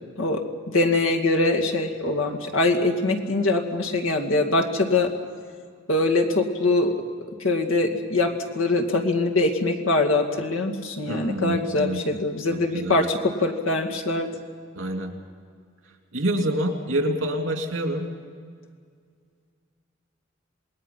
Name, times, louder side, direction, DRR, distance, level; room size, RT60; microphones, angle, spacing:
voice 1, 0.7-5.1 5.9-6.9 7.4-14.3, left 2 dB, 85° left, 2 dB, 2.3 m, -23 dB
voice 2, 11.1-12.0 12.5-13.1 14.7-15.1 16.1-18.0, right 1 dB, 70° right, 3 dB, 3.0 m, -27 dB
27.5 x 21.0 x 5.8 m, 2.1 s
head